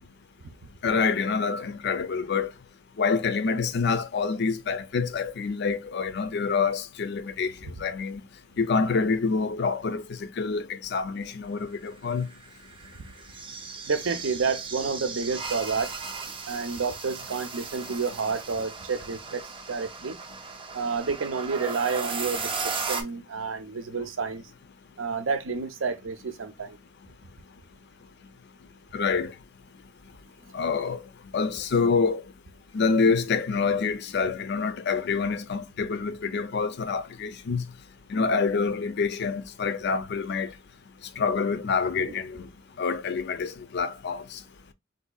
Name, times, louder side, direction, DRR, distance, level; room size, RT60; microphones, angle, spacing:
voice 1, 0.8-2.5 3.0-7.5 7.8-8.2 8.6-12.3 28.9-29.3 30.5-31.0 31.3-32.2 32.7-37.6 38.1-40.5 41.2-42.5 42.8-44.2, left 5 dB, 60° left, 0.5 m, -26 dB
sound 1, 12.1-23.0, right 4 dB, 30° right, 0.6 m, -36 dB
voice 2, 13.9-16.0 16.5-20.2 20.7-24.4 25.0-26.8 42.1-42.2, right 5 dB, 75° right, 0.6 m, -30 dB
3.8 x 2.7 x 2.3 m
head